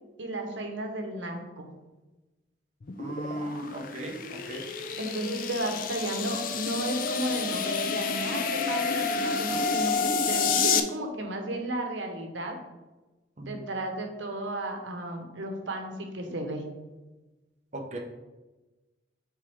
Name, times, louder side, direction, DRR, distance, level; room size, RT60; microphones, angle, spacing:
voice 1, 0.2-1.7 5.0-12.6 13.4-16.6, right 1 dB, 80° right, 3 dB, 1.0 m, -33 dB
sound 1, 2.8-10.8, left 5 dB, 45° left, 0.4 m, -29 dB
voice 2, 3.0-4.6 13.4-13.6 17.7-18.0, right 1 dB, 35° right, 1 dB, 0.8 m, -37 dB
8.1 x 3.6 x 3.5 m, 1.1 s
head